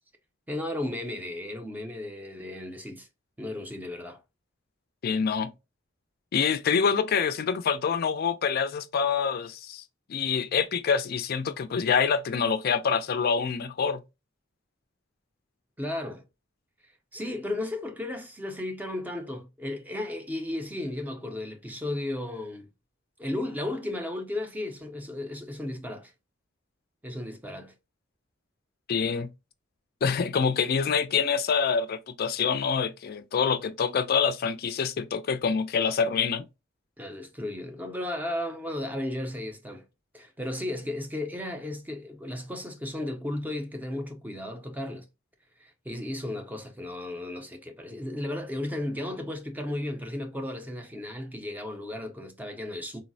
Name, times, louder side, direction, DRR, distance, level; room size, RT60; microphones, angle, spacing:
voice 1, 0.5-3.1 3.4-4.2 15.8-16.2 17.1-22.7 23.2-26.1 27.0-27.7 37.0-39.9 40.1-45.1 45.6-53.0, left 1 dB, 10° right, 0.5 m, -34 dB
voice 2, 5.0-5.5 6.3-9.8 10.1-14.0 28.9-29.3 30.0-36.5, left 6 dB, 50° left, 0.4 m, -26 dB
3.8 x 2.0 x 2.5 m
head